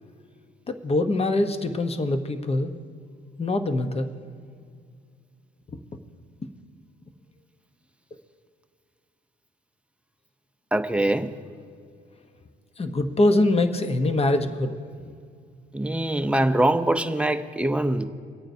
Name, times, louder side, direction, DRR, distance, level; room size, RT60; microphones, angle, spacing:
voice 1, 0.7-2.7 3.4-4.1 12.8-14.7, left 2 dB, 30° left, 8 dB, 0.9 m, -23 dB
voice 2, 10.7-11.3 15.7-18.0, right 1 dB, 5° right, 8 dB, 0.6 m, -23 dB
26.0 x 8.9 x 2.7 m, 2.2 s
cardioid pair, 90°, 20 cm